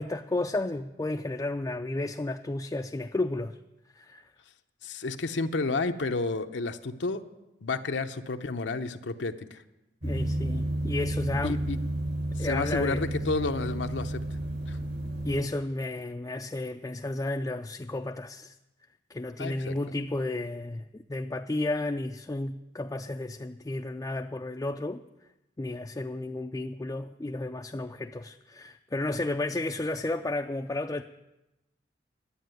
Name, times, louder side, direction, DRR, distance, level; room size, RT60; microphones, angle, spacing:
voice 1, 0.0-3.6 4.0-4.3 10.0-11.6 12.4-13.1 15.2-18.5 19.1-25.0 25.6-31.0, left 2 dB, 20° left, 3 dB, 0.4 m, -32 dB
voice 2, 4.8-7.2 7.6-9.6 11.4-11.8 12.4-14.2 14.7-14.8 19.4-19.7, left 3 dB, 80° left, 6 dB, 0.8 m, -31 dB
sound 1, 10.0-15.4, right 1 dB, 70° right, 3.0 m, -31 dB
11.5 x 8.6 x 9.1 m, 0.96 s
head